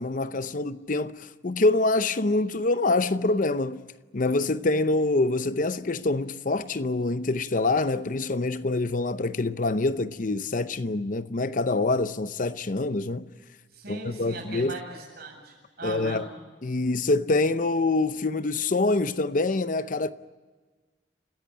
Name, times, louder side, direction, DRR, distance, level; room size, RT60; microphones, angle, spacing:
voice 1, 0.0-3.8 4.1-13.3 13.9-14.8 15.8-16.3 16.6-20.1, left 2 dB, 45° left, 0.7 m, -25 dB
voice 2, 13.8-16.2, right 2 dB, 60° right, 7.9 m, -39 dB
29.0 x 16.0 x 9.1 m
head